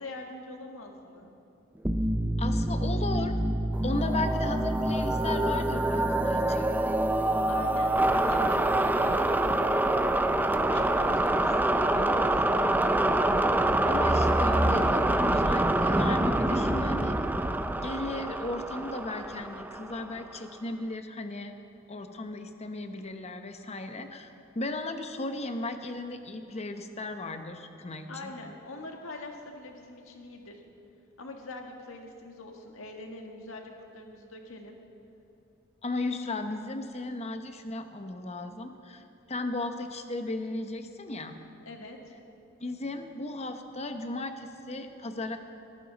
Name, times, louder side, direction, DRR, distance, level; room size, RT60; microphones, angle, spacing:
voice 1, 0.0-1.3 7.5-12.9 28.1-30.6 31.2-34.8 41.6-42.1, left 2 dB, 75° left, 2 dB, 1.6 m, -44 dB
sound 1, 1.8-20.3, right 1 dB, 10° right, 0.5 m, -26 dB
voice 2, 2.4-3.4 3.8-6.7 13.8-17.2 17.8-21.6 21.9-24.3 24.5-28.3 35.8-41.4 42.6-45.4, left 2 dB, 30° left, 7 dB, 0.9 m, -36 dB
19.0 x 14.0 x 4.0 m, 2.8 s
head